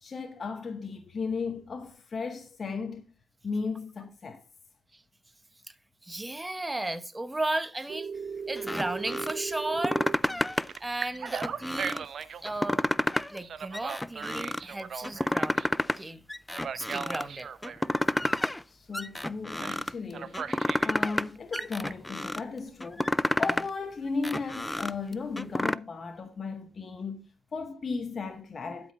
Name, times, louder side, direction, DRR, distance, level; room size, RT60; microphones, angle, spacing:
voice 1, 0.0-3.0 3.4-4.4 18.7-20.4 20.8-28.9, left 4 dB, 40° left, 0.9 m, -35 dB
voice 2, 6.0-8.1 8.5-10.0 10.3-12.1 12.4-12.8 13.3-15.6 16.0-16.2 16.7-17.5 18.2-18.4, right 2 dB, 15° right, 0.9 m, -34 dB
Telephone, 7.9-10.1 10.7-12.4 13.4-15.7 16.5-17.8 19.6-19.8 20.1-20.9 21.4-21.9, right 7 dB, 55° right, 0.7 m, -37 dB
sound 1, 8.6-9.3 9.7-10.8 11.2-12.0 12.5-13.4 13.7-14.6 15.0-16.0 16.3-17.2 17.6-18.6 18.9-19.9 20.3-21.3 21.5-22.4 22.8-23.7 24.1-25.8, left 1 dB, 10° left, 0.3 m, -30 dB
12.5 x 5.2 x 4.2 m
cardioid pair, 90°, 0 cm